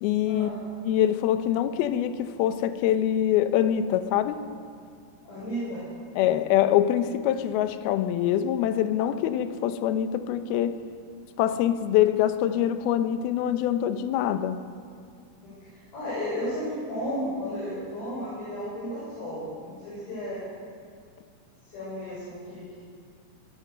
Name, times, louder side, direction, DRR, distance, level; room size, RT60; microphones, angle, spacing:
voice 1, 0.0-0.5 0.8-4.4 6.2-10.8 11.4-14.6, left 11 dB, 75° left, 10 dB, 2.5 m, -24 dB
voice 2, 5.2-5.8 15.4-20.4 21.6-22.8, equal, 55° left, -8 dB, 7.8 m, -34 dB
23.0 x 17.5 x 6.7 m, 2.3 s
omnidirectional pair, 5.1 m